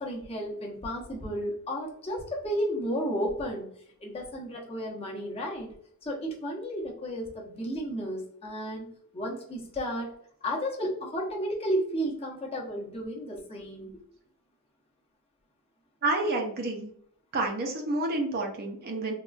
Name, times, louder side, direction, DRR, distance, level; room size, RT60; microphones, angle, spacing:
voice 1, 0.0-3.7 4.0-5.7 6.0-8.9 9.1-10.1 10.4-13.9, equal, 25° left, -2 dB, 0.7 m, -33 dB
voice 2, 16.0-16.9 17.3-19.1, right 2 dB, 45° right, 2 dB, 0.5 m, -29 dB
3.6 x 2.3 x 2.3 m, 0.63 s
head